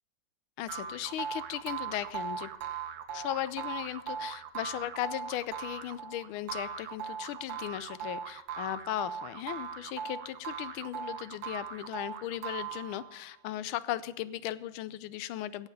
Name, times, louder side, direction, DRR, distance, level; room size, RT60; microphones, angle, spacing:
voice 1, 0.6-2.5 3.1-15.7, left 13 dB, 80° left, 16 dB, 1.4 m, -37 dB
sound 1, 0.7-13.2, right 7 dB, 60° right, 1.1 m, -39 dB
16.0 x 5.7 x 6.8 m, 0.96 s
omnidirectional pair, 2.4 m